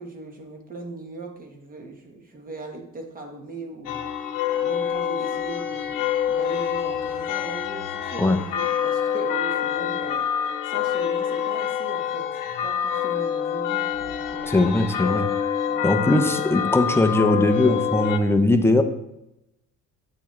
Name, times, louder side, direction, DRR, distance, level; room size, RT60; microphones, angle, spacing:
voice 1, 0.0-4.1 4.5-10.3 10.6-14.6 15.7-15.9, right 3 dB, 25° right, 3 dB, 1.1 m, -39 dB
sound 1, 3.8-18.2, left 9 dB, 75° left, 0.9 m, -26 dB
voice 2, 14.5-15.3 15.8-18.8, left 2 dB, 10° left, 7 dB, 0.5 m, -20 dB
8.3 x 6.9 x 3.1 m, 0.88 s
cardioid pair, 150°, 32 cm